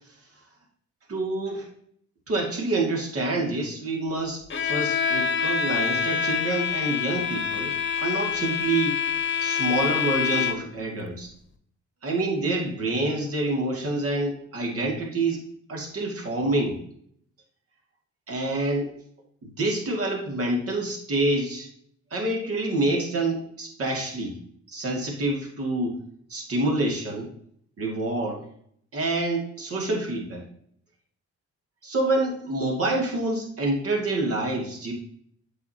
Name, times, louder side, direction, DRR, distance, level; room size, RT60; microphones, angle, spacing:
voice 1, 1.1-1.7 2.3-9.0 9.4-11.3 12.0-15.4 15.7-16.8 18.3-18.9 19.6-21.7 22.1-24.3 24.7-26.0 26.3-27.3 27.8-28.5 28.9-30.4 31.8-34.9, right 2 dB, 50° right, 0 dB, 2.4 m, -27 dB
Bowed string instrument, 4.5-10.8, left 7 dB, 40° left, 1.0 m, -26 dB
8.3 x 7.7 x 2.9 m, 0.65 s
cardioid pair, 90°, 30 cm